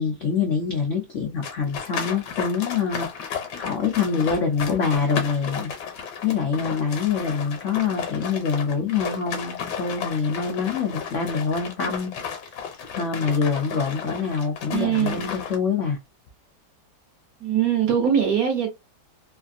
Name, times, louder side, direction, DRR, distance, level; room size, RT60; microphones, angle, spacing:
voice 1, 0.0-5.7 6.2-12.1 12.9-16.0, left 5 dB, 80° left, 0.6 m, -25 dB
sound 1, 1.4-15.6, left 7 dB, 65° left, 1.3 m, -33 dB
voice 2, 14.7-15.2 17.4-18.7, right 8 dB, 60° right, 1.1 m, -22 dB
3.2 x 2.4 x 2.5 m
omnidirectional pair, 2.1 m